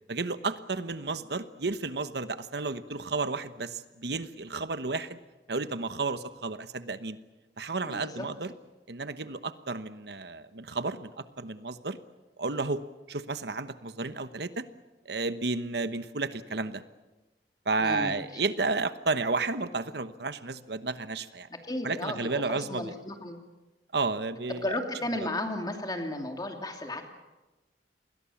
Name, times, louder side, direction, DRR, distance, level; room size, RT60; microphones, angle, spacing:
voice 1, 0.1-5.2 5.5-7.2 7.6-8.5 8.9-11.1 11.4-12.0 12.4-12.8 13.1-14.6 15.1-16.8 17.7-21.5 21.8-22.9 23.9-24.7 25.2-25.3, right 3 dB, 70° right, 11 dB, 1.1 m, -32 dB
voice 2, 7.8-8.3 17.8-18.2 21.5-23.4 24.5-27.1, left 1 dB, 20° left, 4 dB, 2.8 m, -34 dB
29.0 x 21.5 x 7.2 m, 1.1 s
head